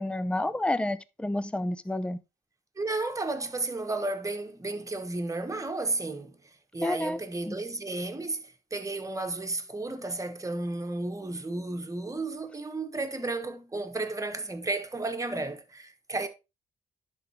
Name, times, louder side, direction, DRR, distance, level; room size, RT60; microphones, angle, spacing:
voice 1, 0.0-2.2 6.8-7.2 7.5-7.6, left 1 dB, 5° left, 0.5 m, -29 dB
voice 2, 2.8-16.3, right 2 dB, 20° right, 1.3 m, -33 dB
11.0 x 3.7 x 3.0 m
supercardioid pair, 60°, 17 cm